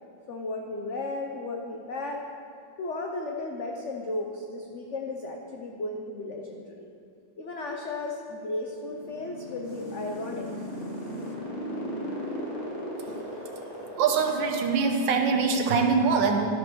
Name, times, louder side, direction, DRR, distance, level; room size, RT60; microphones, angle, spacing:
voice 1, 0.3-2.3 2.8-6.9 7.4-11.3, left 2 dB, 75° left, 1 dB, 0.6 m, -35 dB
sound 1, 8.7-15.3, equal, 35° left, 1.9 m, -36 dB
voice 2, 14.0-16.5, right 5 dB, 70° right, 3 dB, 1.5 m, -23 dB
12.0 x 4.7 x 6.0 m, 2.4 s
omnidirectional pair, 2.1 m